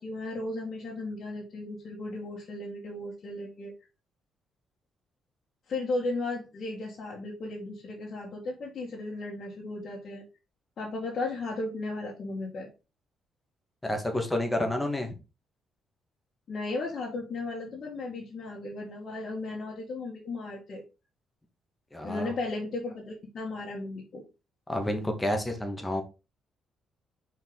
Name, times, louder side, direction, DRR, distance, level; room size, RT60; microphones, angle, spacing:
voice 1, 0.0-3.7 5.7-10.2 10.8-12.7 16.5-20.8 22.0-24.2, left 2 dB, 55° left, -4 dB, 1.8 m, -35 dB
voice 2, 13.8-15.1 21.9-22.3 24.7-26.0, left 1 dB, 10° left, 4 dB, 1.8 m, -29 dB
5.3 x 4.7 x 3.9 m, 0.29 s
cardioid pair, 90°, 0 cm